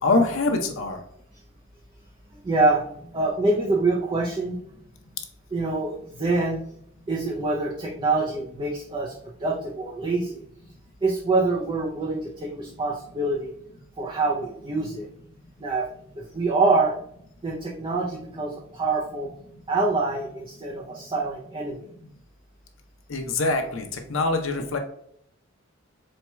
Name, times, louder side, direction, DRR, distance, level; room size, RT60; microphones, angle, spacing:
voice 1, 0.0-1.0 23.1-24.8, left 3 dB, 70° left, 4 dB, 0.7 m, -24 dB
voice 2, 2.3-4.6 5.5-6.6 7.1-9.1 9.4-10.4 11.0-13.5 14.0-15.1 15.6-15.9 16.2-16.9 17.4-19.3 19.7-21.9, right 3 dB, 25° right, -3 dB, 0.5 m, -25 dB
4.4 x 2.3 x 4.2 m, 0.69 s
head